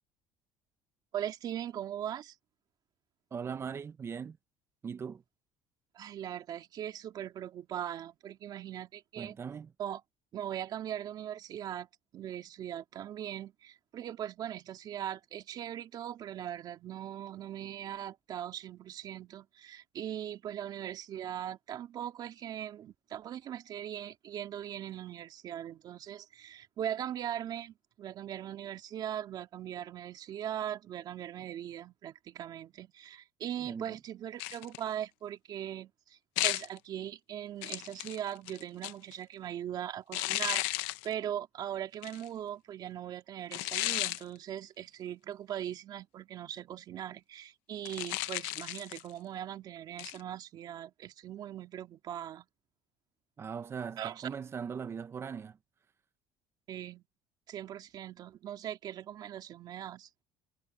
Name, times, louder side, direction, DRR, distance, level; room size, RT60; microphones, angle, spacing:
voice 1, 1.1-2.4 5.9-9.4 9.8-10.0 10.3-11.9 12.1-40.6 41.0-52.5 54.0-54.3 56.7-57.0 57.5-60.1, right 10 dB, 50° right, 2.6 m, -40 dB
voice 2, 3.3-4.4 4.8-5.2 9.2-9.7 33.6-34.0 53.4-55.6, right 6 dB, 30° right, 0.8 m, -40 dB
sound 1, 34.4-34.9 36.4-36.8 37.6-39.2 40.1-41.1 42.0-42.3 43.5-44.2 47.8-49.1 50.0-50.2, left 20 dB, 85° left, 0.9 m, -34 dB
cardioid pair, 120°, 9 cm